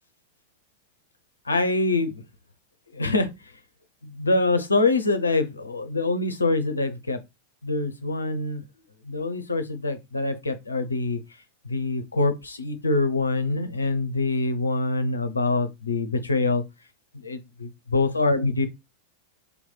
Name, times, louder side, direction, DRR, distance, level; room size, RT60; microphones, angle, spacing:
voice 1, 1.5-2.2 2.9-3.3 4.0-7.2 7.6-8.6 9.0-11.2 11.6-16.6 17.1-18.7, left 3 dB, 80° left, 0.6 m, -25 dB
3.3 x 3.1 x 4.0 m
figure-of-eight pair, 90°, 0 cm